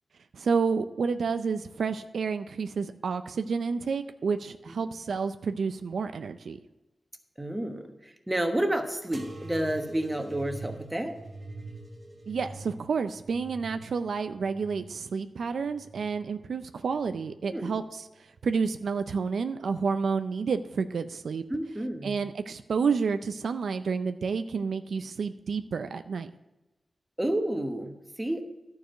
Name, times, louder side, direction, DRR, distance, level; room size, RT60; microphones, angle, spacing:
voice 1, 0.3-6.6 12.3-18.1 18.4-21.4 22.0-26.3, right 5 dB, 85° right, 10 dB, 0.4 m, -30 dB
voice 2, 7.4-11.2 17.5-17.8 21.5-22.2 27.2-28.4, right 1 dB, 15° right, 5 dB, 1.1 m, -30 dB
sound 1, 9.1-16.3 16.9-17.6 18.4-18.9 19.9-20.0, right 2 dB, 40° right, 1.3 m, -45 dB
11.5 x 4.8 x 6.5 m, 1.0 s
wide cardioid pair, 85°, 0 cm